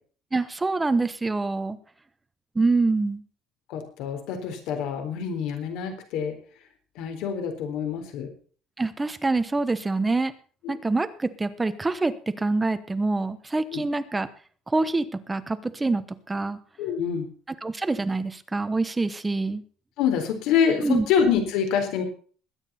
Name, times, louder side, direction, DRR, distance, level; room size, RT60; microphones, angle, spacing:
voice 1, 0.3-1.8 2.5-3.2 8.8-10.3 10.7-14.3 14.7-16.6 17.6-19.6 20.8-21.1, right 3 dB, 10° right, 11 dB, 1.0 m, -25 dB
voice 2, 3.7-6.4 7.0-8.3 10.6-10.8 13.7-13.8 16.8-17.3 20.0-22.0, left 7 dB, 70° left, 5 dB, 4.0 m, -26 dB
21.0 x 9.1 x 4.3 m, 0.42 s
cardioid pair, 150°, 0 cm